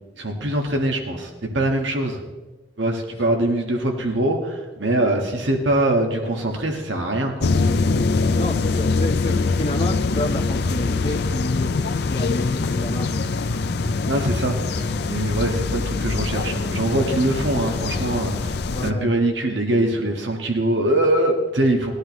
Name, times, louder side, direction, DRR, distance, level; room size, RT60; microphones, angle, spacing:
voice 1, 0.2-2.2 2.8-7.5 14.1-18.5 18.8-21.9, right 1 dB, 75° right, 2 dB, 1.6 m, -23 dB
sound 1, 7.4-18.9, left 3 dB, 60° left, 0.5 m, -23 dB
voice 2, 8.3-11.8 12.0-13.3 18.7-19.1, left 1 dB, 30° left, 3 dB, 1.2 m, -29 dB
19.0 x 11.5 x 3.1 m, 1.2 s
head